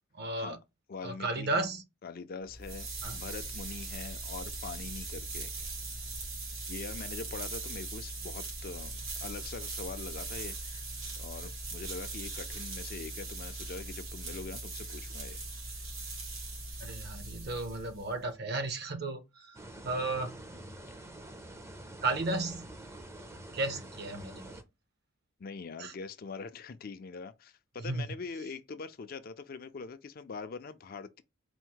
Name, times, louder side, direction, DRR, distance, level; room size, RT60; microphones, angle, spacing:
voice 1, 0.1-0.6 1.0-1.8 3.0-3.2 16.8-19.6 19.8-20.4 22.0-22.7 23.5-24.6 25.8-25.9 27.8-28.0, right 2 dB, 50° right, 0.7 m, -34 dB
voice 2, 0.9-1.6 2.0-5.7 6.7-10.9 11.2-15.4 25.4-31.2, left 4 dB, 45° left, 0.4 m, -43 dB
sound 1, 2.4-18.2, right 3 dB, 90° right, 1.9 m, -40 dB
sound 2, 19.5-24.6, right 1 dB, 15° right, 0.5 m, -47 dB
4.3 x 2.1 x 4.5 m
head